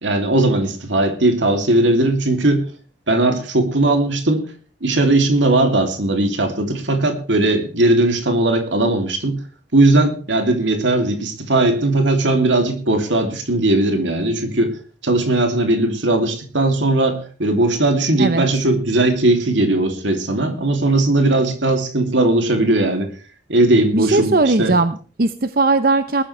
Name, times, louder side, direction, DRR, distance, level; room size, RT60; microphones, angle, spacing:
voice 1, 0.0-2.6 3.1-4.4 4.8-9.4 9.7-14.7 15.0-23.1 23.5-24.7, right 2 dB, 90° right, 5 dB, 3.0 m, -18 dB
voice 2, 23.9-26.2, right 3 dB, 50° right, 11 dB, 0.8 m, -18 dB
20.0 x 13.0 x 3.3 m, 0.40 s
head